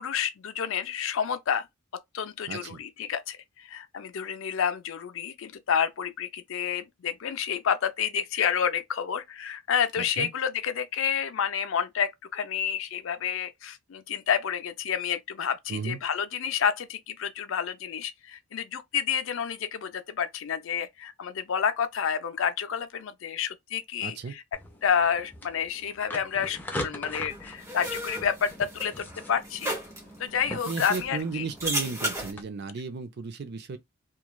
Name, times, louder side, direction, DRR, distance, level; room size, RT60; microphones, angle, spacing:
voice 1, 0.0-1.7 2.1-24.4 24.8-29.8 30.2-31.5, left 7 dB, 65° left, 0.4 m, -29 dB
voice 2, 2.5-2.8 10.0-10.3 15.7-16.0 24.0-24.3 30.5-33.8, right 4 dB, 55° right, 0.5 m, -34 dB
sound 1, 24.5-32.4, left 1 dB, 10° left, 0.5 m, -41 dB
sound 2, 27.3-32.3, equal, 15° right, 0.9 m, -35 dB
3.1 x 2.3 x 2.3 m
head